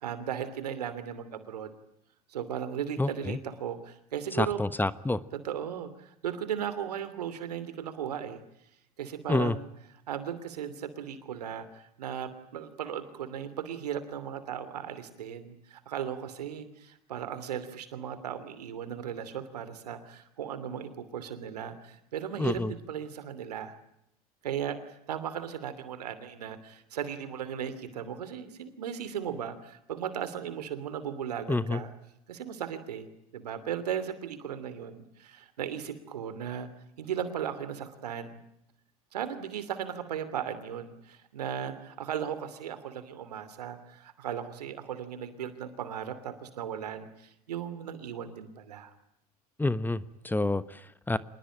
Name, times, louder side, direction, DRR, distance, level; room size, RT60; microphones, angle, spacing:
voice 1, 0.0-1.7 2.3-4.6 5.4-8.4 9.0-9.7 10.1-23.7 24.4-24.8 25.1-31.9 32.3-33.1 33.3-36.7 37.0-38.4 39.1-48.9, right 9 dB, 85° right, 12 dB, 2.9 m, -36 dB
voice 2, 3.0-3.4 4.4-5.2 9.3-9.6 22.4-22.7 31.5-31.8 49.6-51.2, left 2 dB, 10° left, 16 dB, 1.1 m, -28 dB
26.0 x 20.5 x 9.0 m, 0.79 s
hypercardioid pair, 80°, 20 cm